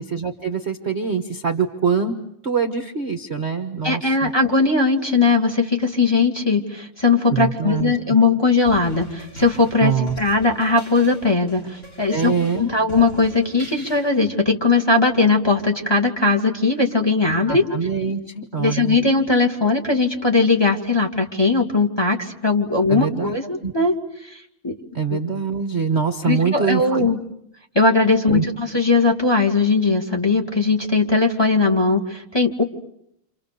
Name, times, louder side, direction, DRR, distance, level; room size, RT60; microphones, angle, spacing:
voice 1, 0.0-2.2 2.4-4.3 7.3-8.0 9.8-10.2 12.1-12.7 17.5-19.0 22.9-23.4 23.6-23.7 24.9-27.1 28.3-28.4, right 6 dB, 35° right, 6 dB, 1.4 m, -24 dB
voice 2, 3.8-17.7 18.6-24.0 24.2-24.7 25.1-25.2 26.2-27.2 27.7-32.6, left 3 dB, 10° left, 3 dB, 2.3 m, -19 dB
sound 1, 8.7-14.3, right 1 dB, 35° left, 3.6 m, -41 dB
30.0 x 27.0 x 6.8 m, 0.74 s
omnidirectional pair, 2.4 m